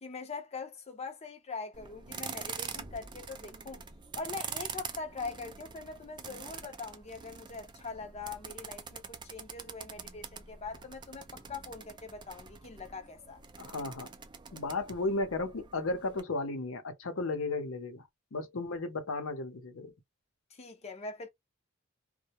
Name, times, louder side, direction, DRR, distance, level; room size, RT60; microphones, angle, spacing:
voice 1, 0.0-3.8 4.1-13.4 20.5-21.3, left 4 dB, 35° left, 0.5 m, -42 dB
sound 1, 1.7-16.2, right 6 dB, 25° right, 0.3 m, -45 dB
voice 2, 13.6-14.1 14.5-18.0 18.3-19.9, left 3 dB, 85° left, 0.7 m, -34 dB
2.1 x 2.0 x 2.8 m
head